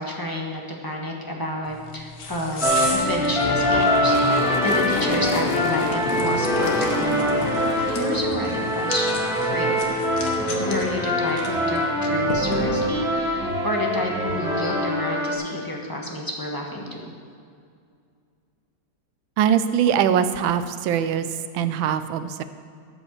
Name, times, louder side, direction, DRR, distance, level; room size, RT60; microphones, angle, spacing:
voice 1, 0.0-9.9 10.6-17.1, left 1 dB, 15° left, -1 dB, 0.9 m, -30 dB
sound 1, 1.7-13.1, left 3 dB, 50° left, 1.5 m, -36 dB
sound 2, 2.6-15.3, equal, ahead, 1.7 m, -23 dB
sound 3, 3.0-9.4, left 9 dB, 85° left, 0.8 m, -31 dB
voice 2, 19.4-22.4, right 9 dB, 75° right, 11 dB, 1.3 m, -22 dB
13.0 x 5.2 x 7.3 m, 2.3 s
omnidirectional pair, 2.3 m